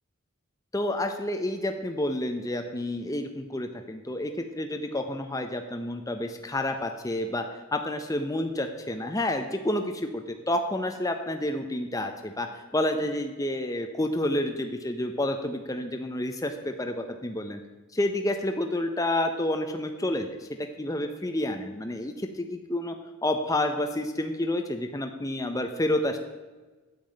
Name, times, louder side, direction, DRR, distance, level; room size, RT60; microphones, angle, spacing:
voice 1, 0.7-7.4 7.7-12.5 12.7-16.9 17.2-17.6 17.9-20.5 20.8-22.9 23.2-26.2, left 1 dB, 15° left, 5 dB, 0.7 m, -29 dB
9.3 x 7.0 x 8.9 m, 1.3 s
head